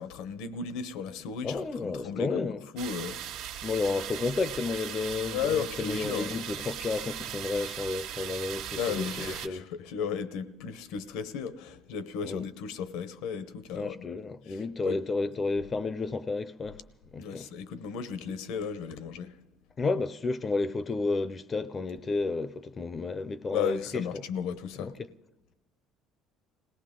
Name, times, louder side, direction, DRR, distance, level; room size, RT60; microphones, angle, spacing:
voice 1, 0.0-3.2 5.3-6.4 8.8-14.2 14.5-15.0 17.2-19.4 23.5-24.9, left 7 dB, 80° left, 0.9 m, -35 dB
voice 2, 1.4-2.7 3.6-9.6 12.2-12.5 13.7-16.8 17.1-17.5 19.8-24.0 24.8-24.9, left 3 dB, 25° left, 0.4 m, -31 dB
sound 1, 2.8-9.5, right 10 dB, 75° right, 1.3 m, -38 dB
21.5 x 17.5 x 3.7 m
cardioid pair, 135°, 0 cm